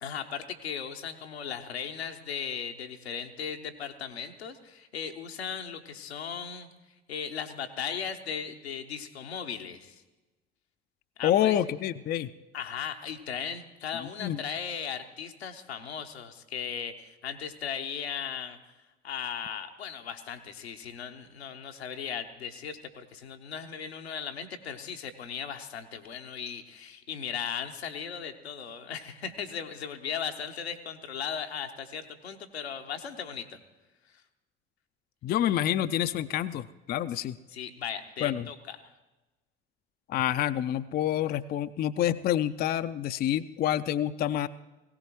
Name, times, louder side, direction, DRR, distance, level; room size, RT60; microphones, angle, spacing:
voice 1, 0.0-6.7 7.1-10.0 11.2-11.6 12.5-18.6 19.0-33.6 37.1-37.2 37.5-38.8, left 7 dB, 80° left, 5 dB, 0.9 m, -37 dB
voice 2, 11.2-12.3 14.0-14.4 35.2-37.4 38.2-38.5 40.1-44.5, left 11 dB, 30° left, 13 dB, 0.4 m, -28 dB
18.5 x 17.0 x 3.0 m, 1.1 s
figure-of-eight pair, 55°, 31 cm